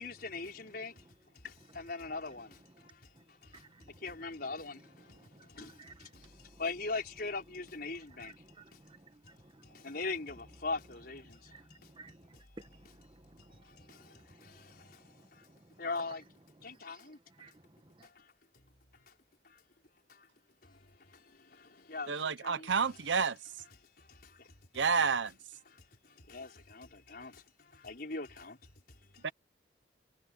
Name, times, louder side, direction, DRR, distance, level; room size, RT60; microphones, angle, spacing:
voice 1, 0.0-1.1 1.3-8.3 8.7-8.8 9.6-11.5 11.8-11.9 13.6-15.5 15.8-16.2 16.6-17.5 18.0-18.3 19.1-19.2 19.4-19.6 20.1-20.3 20.6-22.9 24.0-24.5 24.9-25.1 25.7-28.6 28.9-29.3, left 3 dB, 55° left, 5.3 m, -42 dB
voice 2, 2.7-4.0 4.7-6.6 7.9-10.0 11.2-15.8 16.6-18.1, right 2 dB, 25° right, 1.3 m, -58 dB
voice 3, 22.1-23.4 24.7-25.3 29.2-29.3, right 5 dB, 75° right, 0.8 m, -29 dB
head